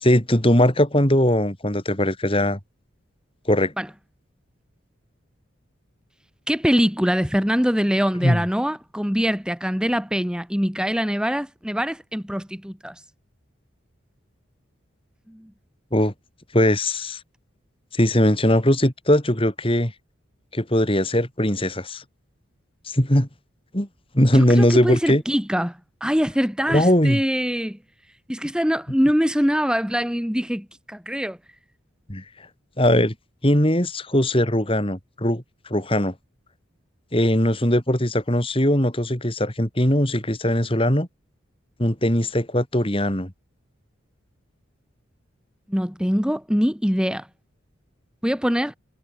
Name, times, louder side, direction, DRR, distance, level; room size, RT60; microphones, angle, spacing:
voice 1, 0.0-2.6 3.5-3.7 8.2-8.4 15.9-16.1 16.5-17.2 17.9-19.9 20.5-22.0 22.9-23.3 23.7-23.9 24.1-25.2 26.7-27.2 32.1-32.2 32.8-33.1 33.4-35.4 35.7-36.1 37.1-41.1 41.8-43.3, left 1 dB, 25° left, 4.1 m, -20 dB
voice 2, 6.5-12.9 15.3-15.4 24.3-27.8 28.3-31.4 45.7-47.3 48.2-48.7, equal, 5° right, 2.4 m, -23 dB
head